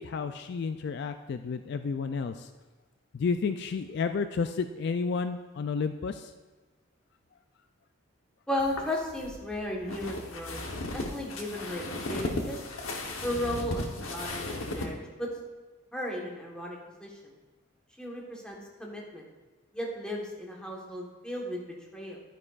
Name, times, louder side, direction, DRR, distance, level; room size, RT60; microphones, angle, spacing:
voice 1, 0.0-2.5 3.1-6.3, left 5 dB, 55° left, 9 dB, 0.3 m, -31 dB
voice 2, 8.5-10.6 10.9-12.6 13.2-15.3 15.9-17.3 18.0-19.2 19.7-22.2, left 1 dB, 5° left, -2 dB, 1.3 m, -35 dB
sound 1, 8.6-14.9, left 2 dB, 80° left, 1.0 m, -36 dB
11.5 x 9.8 x 2.4 m, 1.2 s
head